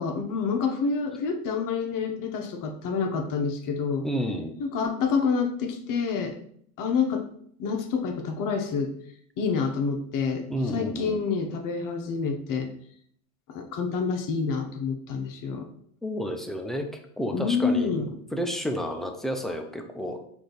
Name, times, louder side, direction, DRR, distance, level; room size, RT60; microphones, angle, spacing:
voice 1, 0.0-4.1 4.6-6.4 6.8-7.3 7.6-8.9 9.4-10.5 10.7-12.7 13.5-15.7 17.3-18.1, left 5 dB, 45° left, 4 dB, 1.0 m, -27 dB
voice 2, 4.0-4.5 10.5-11.2 16.0-16.9 17.2-20.2, equal, ahead, 3 dB, 0.3 m, -31 dB
4.9 x 2.7 x 3.9 m, 0.64 s
hypercardioid pair, 95°, 45 cm